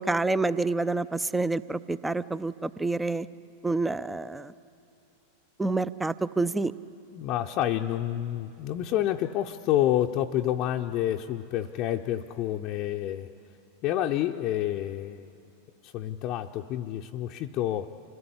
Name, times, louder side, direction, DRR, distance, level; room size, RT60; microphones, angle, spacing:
voice 1, 0.0-3.3 3.6-4.5 5.6-6.7, right 3 dB, 5° right, 17 dB, 0.5 m, -28 dB
voice 2, 7.1-13.3 13.8-15.3 15.8-17.9, left 12 dB, 40° left, 2 dB, 0.7 m, -28 dB
26.5 x 17.5 x 9.8 m, 2.5 s
figure-of-eight pair, 90°, 0 cm